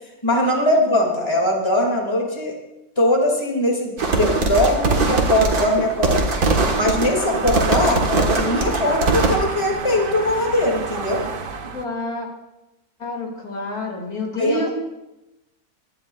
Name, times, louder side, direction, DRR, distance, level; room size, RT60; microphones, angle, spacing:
voice 1, 0.2-2.5 3.0-6.2 6.7-11.2 14.3-14.7, left 1 dB, 20° left, 0 dB, 2.3 m, -21 dB
sound 1, 4.0-9.4, right 3 dB, 80° right, 2.0 m, -21 dB
sound 2, 6.5-11.8, right 5 dB, 45° right, 0.8 m, -30 dB
voice 2, 11.7-12.3 13.0-14.7, left 1 dB, 80° left, 0 dB, 2.9 m, -28 dB
23.5 x 10.5 x 2.4 m, 0.98 s
omnidirectional pair, 1.6 m